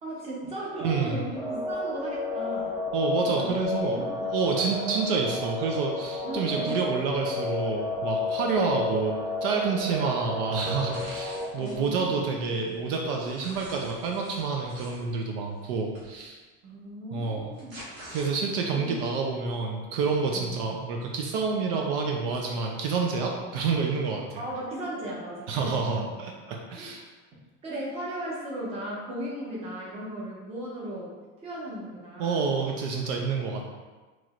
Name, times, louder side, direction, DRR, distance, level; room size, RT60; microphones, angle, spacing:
voice 1, 0.0-2.7 3.4-3.5 3.9-4.1 6.2-6.7 10.0-10.1 11.6-12.5 16.6-17.7 18.7-18.9 20.3-20.5 23.4-23.5 24.4-25.9 26.5-26.9 27.6-31.1 31.4-32.5, right 1 dB, 20° right, -5 dB, 0.9 m, -36 dB
voice 2, 0.8-1.3 2.9-16.4 17.1-17.5 18.1-24.4 25.5-27.0 32.2-33.7, right 4 dB, 65° right, 1 dB, 0.6 m, -28 dB
sound 1, 1.3-11.4, left 2 dB, ahead, 0.5 m, -32 dB
sound 2, 10.9-11.8 12.3-15.1 15.9-16.1 17.3-18.7, right 1 dB, 35° right, 1.4 m, -46 dB
6.0 x 3.0 x 2.5 m, 1.3 s
cardioid pair, 170°, 30 cm